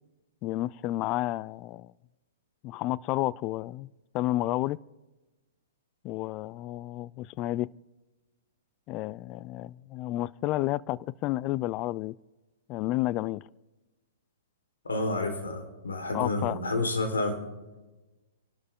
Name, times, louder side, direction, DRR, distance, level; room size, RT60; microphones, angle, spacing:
voice 1, 0.4-1.9 2.6-3.9 4.1-4.8 6.0-7.7 8.9-12.2 12.7-13.4 16.1-16.6, left 16 dB, 35° left, 0.4 m, -31 dB
voice 2, 14.8-17.4, left 2 dB, 85° left, 4.0 m, -29 dB
29.5 x 12.5 x 3.7 m
hypercardioid pair, 120°, 0 cm